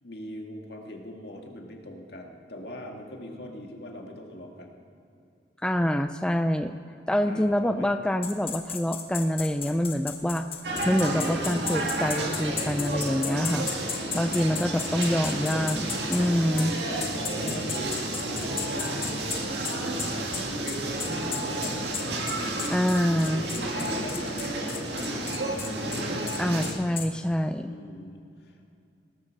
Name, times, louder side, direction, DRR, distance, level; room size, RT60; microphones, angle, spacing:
voice 1, 0.0-4.8 7.2-7.9 14.9-15.4 16.8-20.5 21.2-22.8 23.3-26.5 27.7-28.5, left 1 dB, 60° left, 1 dB, 2.0 m, -41 dB
voice 2, 5.6-6.8 7.1-10.5 10.8-13.7 14.1-16.8 22.7-23.5 26.4-27.7, equal, 5° left, 8 dB, 0.3 m, -26 dB
sound 1, 8.2-16.2 16.6-16.7 17.0-27.1, left 7 dB, 30° left, 1.2 m, -35 dB
sound 2, 10.6-26.7, right 1 dB, 65° right, 2.1 m, -31 dB
19.5 x 8.0 x 6.6 m, 2.6 s
head